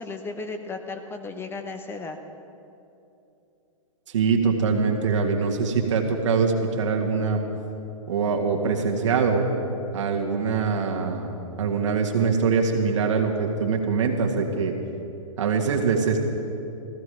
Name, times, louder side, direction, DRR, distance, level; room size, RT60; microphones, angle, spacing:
voice 1, 0.0-2.2, left 3 dB, 15° left, 5 dB, 0.8 m, -35 dB
voice 2, 4.1-7.4 8.1-9.4 9.9-11.3 11.6-14.7 15.4-16.2, right 5 dB, 60° right, 2 dB, 2.0 m, -23 dB
15.0 x 15.0 x 4.9 m, 2.8 s
figure-of-eight pair, 115°, 17 cm